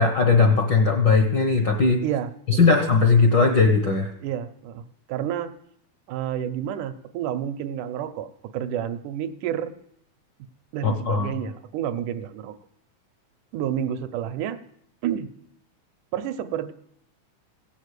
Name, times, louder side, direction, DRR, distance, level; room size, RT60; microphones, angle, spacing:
voice 1, 0.0-2.0 2.5-4.1 10.8-11.3, left 4 dB, 65° left, 4 dB, 1.1 m, -19 dB
voice 2, 2.0-2.8 4.2-5.5 6.1-9.7 10.7-12.5 13.5-14.6 15.0-15.3 16.1-16.7, right 10 dB, 80° right, 9 dB, 2.2 m, -30 dB
16.0 x 7.1 x 8.2 m, 0.73 s
omnidirectional pair, 3.5 m